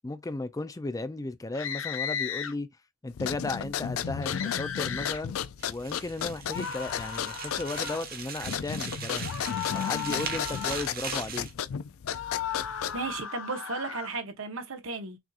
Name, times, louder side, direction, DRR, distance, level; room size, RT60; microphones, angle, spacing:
voice 1, 0.0-2.7 3.0-5.4 5.7-9.3 9.7-11.5, left 2 dB, 15° left, 0.4 m, -35 dB
sound 1, 1.5-2.5 4.2-5.2 6.5-8.1 9.2-10.9 12.1-14.2, left 8 dB, 65° left, 0.8 m, -36 dB
sound 2, 3.1-13.2, left 8 dB, 85° left, 0.4 m, -34 dB
sound 3, 5.6-11.5, right 6 dB, 45° right, 1.2 m, -39 dB
voice 2, 12.9-15.2, right 3 dB, 75° right, 1.1 m, -35 dB
6.0 x 2.7 x 2.4 m
head